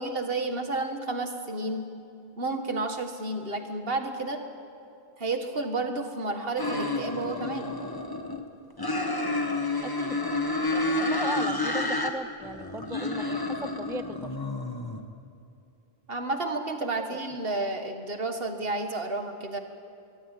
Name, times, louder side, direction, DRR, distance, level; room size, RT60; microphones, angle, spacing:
voice 1, 0.0-1.9 2.4-4.4 5.2-7.7 16.1-19.6, right 2 dB, 60° right, 6 dB, 2.1 m, -31 dB
sound 1, 6.6-8.4 8.8-12.1 12.4-15.0, left 2 dB, 20° left, 1.5 m, -30 dB
voice 2, 9.8-10.2 10.6-14.3 17.0-17.2, right 2 dB, 5° right, 12 dB, 0.5 m, -38 dB
23.5 x 23.0 x 8.5 m, 2.6 s
omnidirectional pair, 1.1 m